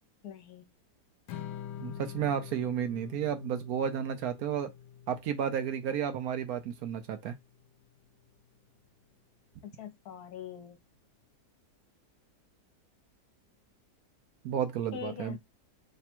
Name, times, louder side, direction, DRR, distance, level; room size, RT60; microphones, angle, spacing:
voice 1, 0.2-0.7 9.6-10.8 14.9-15.4, left 9 dB, 70° left, 1.3 m, -43 dB
Strum, 1.3-7.5, left 10 dB, 90° left, 1.2 m, -46 dB
voice 2, 1.8-4.7 5.1-7.3 14.4-15.4, right 8 dB, 70° right, 1.0 m, -32 dB
3.3 x 2.3 x 4.2 m
omnidirectional pair, 1.7 m